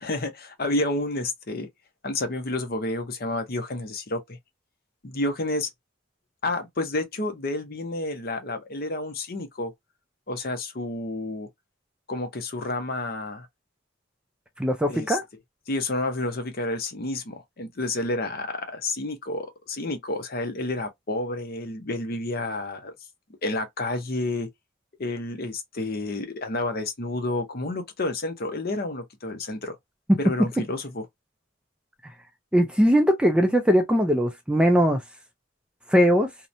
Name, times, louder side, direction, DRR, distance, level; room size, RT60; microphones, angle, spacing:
voice 1, 0.0-1.7 2.0-4.4 5.0-5.7 6.4-9.7 10.3-11.5 12.1-13.5 14.9-15.2 15.7-22.9 23.4-24.5 25.0-29.8 30.2-31.1, left 2 dB, 45° left, 0.6 m, -30 dB
voice 2, 14.6-15.2 30.1-30.2 32.5-35.0 35.9-36.3, equal, 5° right, 0.3 m, -20 dB
2.8 x 2.1 x 2.5 m
head